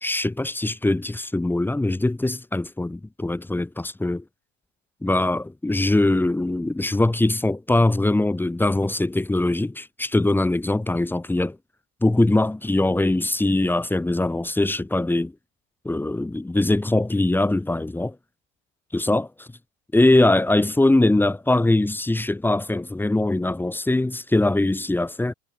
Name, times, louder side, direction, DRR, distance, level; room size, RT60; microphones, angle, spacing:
voice 1, 0.0-4.2 5.0-11.6 12.0-15.3 15.8-18.1 18.9-19.5 19.9-25.3, left 2 dB, 5° left, 1.4 m, -22 dB
supercardioid pair, 130°, 35 cm